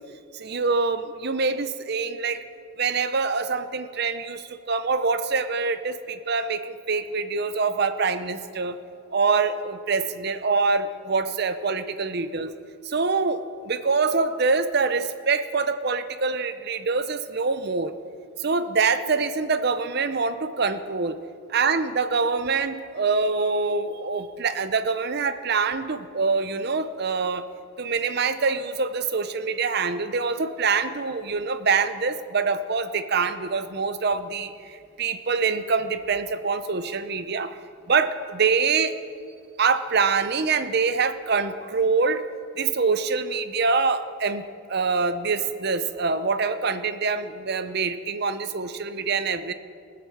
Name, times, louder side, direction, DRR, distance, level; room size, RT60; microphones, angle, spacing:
voice 1, 0.3-2.4 2.8-8.8 9.1-12.5 12.8-17.9 18.4-21.2 21.5-27.4 27.8-37.6 37.9-38.9 39.6-42.2 42.6-44.4 44.7-49.5, right 4 dB, 50° right, 11 dB, 0.7 m, -25 dB
18.0 x 7.7 x 7.1 m, 2.3 s
head